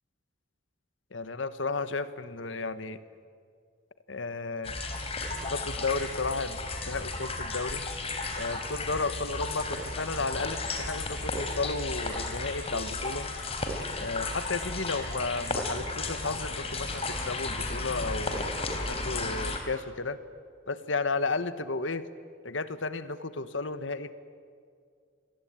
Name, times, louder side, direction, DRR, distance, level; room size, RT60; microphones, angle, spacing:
voice 1, 1.1-3.0 4.1-4.8 5.4-6.6 6.9-7.8 8.4-13.3 14.0-18.5 18.9-20.2 20.7-22.1 22.4-24.1, left 3 dB, 80° left, 12 dB, 1.4 m, -33 dB
sound 1, 4.6-19.6, left 2 dB, 30° left, 3.7 m, -34 dB
28.0 x 22.0 x 9.0 m, 2.2 s
head